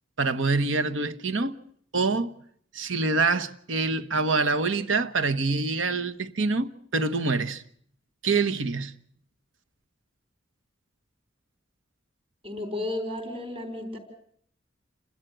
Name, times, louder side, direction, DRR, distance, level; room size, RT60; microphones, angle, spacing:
voice 1, 0.2-1.6 1.9-2.3 2.7-7.6 8.2-8.9, right 3 dB, 85° right, 1.2 m, -25 dB
voice 2, 12.4-14.0, left 2 dB, 30° right, 4.5 m, -33 dB
29.0 x 12.5 x 9.1 m
head